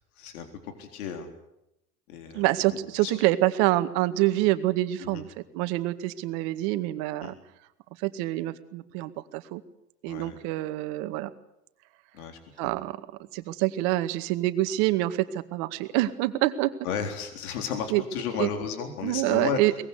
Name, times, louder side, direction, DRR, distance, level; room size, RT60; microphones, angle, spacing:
voice 1, 0.2-1.3 2.1-3.1 5.0-5.2 7.2-7.3 10.1-10.4 12.1-12.7 16.8-19.6, left 7 dB, 70° left, 5 dB, 4.0 m, -34 dB
voice 2, 2.3-5.3 5.5-7.3 8.0-9.6 10.0-11.3 12.6-13.0 13.3-16.7 17.9-18.0 18.4-18.5 19.0-19.8, right 16 dB, 55° right, 10 dB, 2.1 m, -26 dB
23.0 x 20.5 x 8.2 m, 0.85 s
hypercardioid pair, 90°, 46 cm